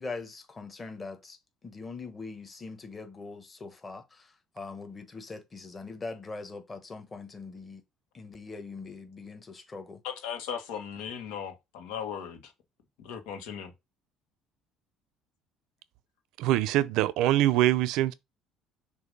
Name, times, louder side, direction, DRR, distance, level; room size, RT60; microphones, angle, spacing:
voice 1, 0.0-1.4 1.6-7.8 8.1-10.0, left 3 dB, 20° left, 1.1 m, -42 dB
voice 2, 10.0-12.5 13.0-13.7, left 8 dB, 85° left, 1.3 m, -37 dB
voice 3, 16.4-18.1, right 14 dB, 75° right, 0.5 m, -24 dB
6.7 x 2.6 x 5.3 m
cardioid pair, 130°, 0 cm